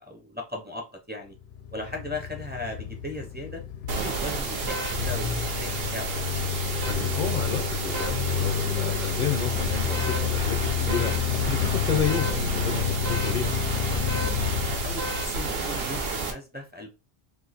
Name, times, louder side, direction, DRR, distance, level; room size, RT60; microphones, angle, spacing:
voice 1, 0.0-1.3 1.7-3.6 3.9-6.3 14.8-16.9, left 2 dB, 10° right, 0.6 m, -37 dB
sound 1, 1.4-15.7, left 9 dB, 85° left, 0.8 m, -30 dB
sound 2, 3.9-16.3, right 3 dB, 70° right, 1.0 m, -31 dB
voice 2, 6.8-13.6, left 6 dB, 55° left, 0.7 m, -31 dB
2.7 x 2.5 x 4.0 m
omnidirectional pair, 1.0 m